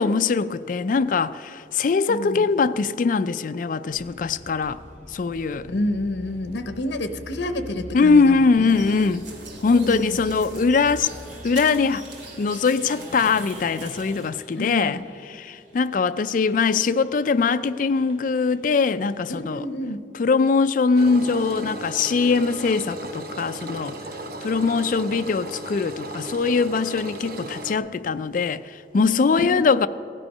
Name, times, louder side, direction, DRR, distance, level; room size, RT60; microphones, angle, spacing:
voice 1, 0.0-4.8 5.1-5.7 7.9-9.3 9.6-11.1 11.4-12.0 12.4-15.0 15.3-19.6 20.2-24.0 24.4-29.9, left 4 dB, 45° left, 0.3 m, -22 dB
voice 2, 2.1-2.5 5.7-8.8 9.8-10.2 10.5-10.7 14.5-15.0 19.3-20.0 29.4-29.6, left 1 dB, 80° left, 0.8 m, -29 dB
sound 1, 3.9-19.4, equal, 40° right, 2.1 m, -46 dB
sound 2, 8.7-14.3, right 2 dB, 75° right, 2.4 m, -41 dB
Engine, 21.0-27.8, right 1 dB, 55° right, 0.9 m, -36 dB
16.0 x 9.9 x 5.5 m
head